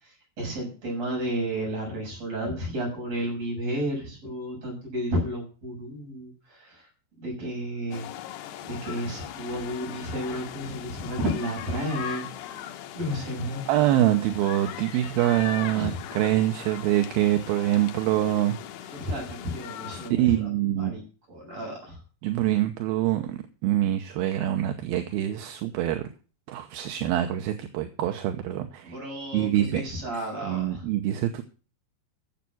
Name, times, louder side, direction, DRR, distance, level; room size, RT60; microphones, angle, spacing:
voice 1, 0.0-6.9 7.2-8.0 8.6-13.6 15.7-16.0 18.9-21.0 21.3-22.0 28.8-30.9, equal, 40° right, 0 dB, 7.8 m, -32 dB
sound 1, 7.9-20.1, left 10 dB, 90° left, 3.1 m, -39 dB
voice 2, 13.7-18.6 19.9-20.9 22.2-26.0 26.5-29.0 29.3-29.8 30.4-31.4, right 13 dB, 75° right, 6 dB, 2.7 m, -25 dB
14.5 x 7.5 x 6.0 m, 0.37 s
omnidirectional pair, 4.5 m